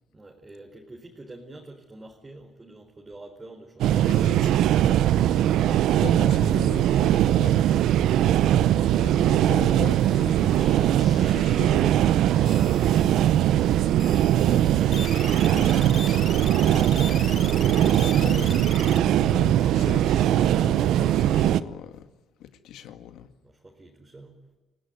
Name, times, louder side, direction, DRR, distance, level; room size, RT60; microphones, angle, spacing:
voice 1, 0.1-4.4 23.4-24.4, right 2 dB, 25° right, 0 dB, 4.7 m, -47 dB
sound 1, 3.8-21.6, right 11 dB, 85° right, 0.8 m, -21 dB
voice 2, 4.1-4.6 5.9-7.6 8.9-12.5 15.5-18.7 19.7-22.1 22.4-23.3, left 10 dB, 85° left, 9 dB, 1.9 m, -40 dB
sound 2, 10.0-12.2 12.5-13.4 14.0-19.9, left 6 dB, 45° left, 0.9 m, -40 dB
29.0 x 18.0 x 9.5 m, 1.1 s
cardioid pair, 90°, 0 cm